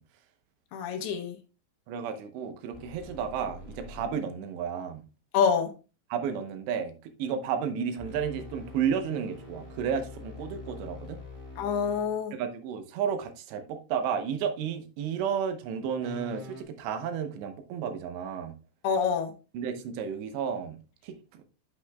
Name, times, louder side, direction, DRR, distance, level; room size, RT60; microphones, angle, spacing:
voice 1, 0.7-1.4 5.3-5.7 11.6-12.3 18.8-19.3, left 6 dB, 75° left, 2.5 m, -26 dB
voice 2, 1.9-5.0 6.1-11.2 12.3-18.5 19.5-21.4, right 7 dB, 75° right, 3.0 m, -32 dB
sound 1, 2.7-4.1 8.0-12.1 16.0-16.6, left 3 dB, 10° left, 2.0 m, -45 dB
9.0 x 7.8 x 2.3 m
omnidirectional pair, 5.3 m